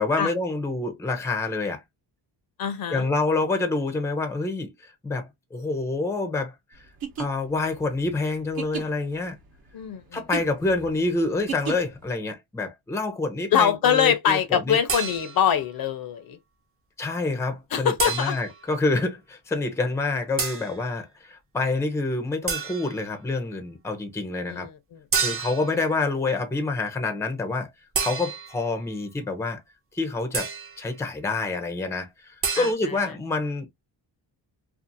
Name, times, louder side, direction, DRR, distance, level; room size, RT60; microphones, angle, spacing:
voice 1, 0.0-1.8 2.9-6.9 7.2-9.4 10.1-14.8 17.0-24.7 25.2-27.7 28.0-29.6 29.9-33.7, left 3 dB, 5° left, 0.5 m, -27 dB
voice 2, 2.6-3.1 9.7-10.2 13.5-16.4 17.7-18.4 24.5-25.3 32.6-32.7, left 8 dB, 55° left, 0.6 m, -24 dB
sound 1, 6.9-12.1, right 7 dB, 55° right, 0.9 m, -35 dB
sound 2, 14.9-15.6 18.0-18.6 20.4-20.8 22.5-23.0 25.1-25.8 27.9-28.7 30.3-30.8 32.4-32.7, right 5 dB, 30° right, 0.7 m, -29 dB
2.6 x 2.4 x 2.6 m
cardioid pair, 120°, 43 cm